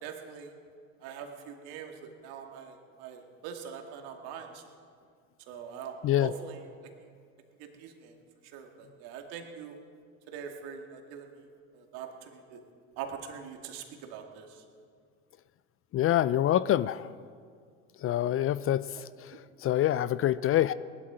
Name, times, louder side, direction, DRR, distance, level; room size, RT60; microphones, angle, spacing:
voice 1, 0.0-0.5 1.0-4.6 5.5-6.6 7.0-7.1 7.6-8.2 8.4-9.7 10.3-11.5 11.7-12.6 13.0-14.6 19.0-19.1 19.3-19.4, right 7 dB, 65° right, 3 dB, 2.2 m, -43 dB
voice 2, 15.9-17.2 18.0-20.7, left 12 dB, 35° left, 17 dB, 0.4 m, -26 dB
19.5 x 12.0 x 5.0 m, 2.1 s
hypercardioid pair, 75°, 39 cm